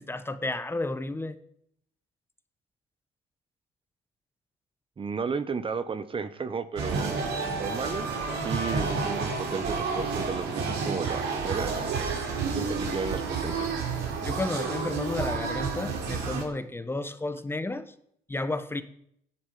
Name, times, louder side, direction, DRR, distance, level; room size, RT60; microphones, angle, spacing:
voice 1, 0.0-1.4 14.2-17.9 18.3-18.8, left 2 dB, 15° left, 10 dB, 1.2 m, -32 dB
voice 2, 5.0-7.3 7.6-13.7, right 5 dB, 30° right, 12 dB, 1.3 m, -34 dB
sound 1, 6.8-16.4, right 4 dB, 85° right, 4.7 m, -30 dB
14.0 x 10.5 x 9.4 m, 0.71 s
cardioid pair, 110°, 17 cm